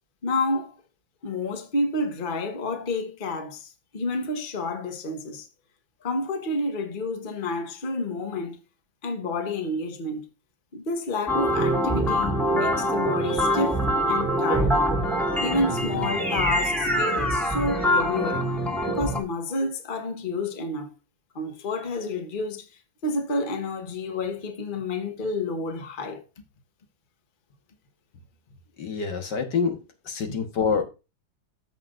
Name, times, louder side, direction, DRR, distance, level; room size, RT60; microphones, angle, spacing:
voice 1, 0.2-0.8 1.2-5.5 6.0-8.6 9.0-10.2 10.7-13.8 14.1-14.9 15.4-18.5 18.9-20.9 21.3-22.7 23.0-26.2 30.2-30.3, left 2 dB, 30° left, 1.3 m, -29 dB
sound 1, 11.3-19.2, equal, ahead, 1.7 m, -24 dB
voice 2, 28.8-29.8 30.1-30.8, left 6 dB, 70° left, 1.9 m, -26 dB
14.5 x 6.0 x 2.5 m
omnidirectional pair, 2.0 m